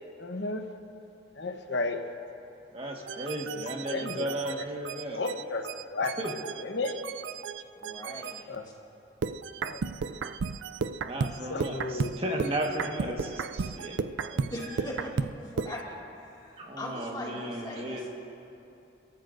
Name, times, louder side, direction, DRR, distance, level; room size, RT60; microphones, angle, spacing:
voice 1, 0.2-0.7 1.4-2.0 3.5-3.6 3.9-4.2 4.6-4.7 5.1-6.1 6.6-7.0 8.5-8.6 9.7-9.8 11.5-12.5, left 3 dB, 70° left, 5 dB, 1.0 m, -33 dB
voice 2, 2.7-5.2 6.2-6.3 11.0-14.4 16.6-18.0, right 1 dB, 30° right, 0 dB, 1.6 m, -35 dB
sound 1, 3.1-8.4 9.2-15.8, right 5 dB, 80° right, 0.4 m, -34 dB
voice 3, 7.7-8.5 14.5-18.1, left 1 dB, 25° left, -4 dB, 2.4 m, -40 dB
29.5 x 13.5 x 2.6 m, 2.8 s
head